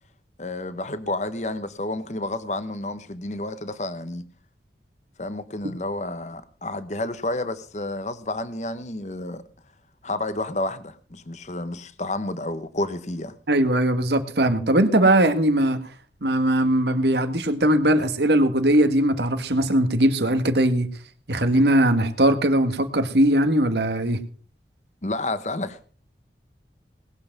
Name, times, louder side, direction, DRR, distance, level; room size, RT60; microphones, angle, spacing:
voice 1, 0.4-4.2 5.2-9.4 10.0-13.3 25.0-25.8, left 2 dB, 40° left, 1.0 m, -30 dB
voice 2, 13.5-15.8 16.2-20.9 21.3-24.2, right 1 dB, 75° right, 1.7 m, -20 dB
19.5 x 7.9 x 6.0 m
head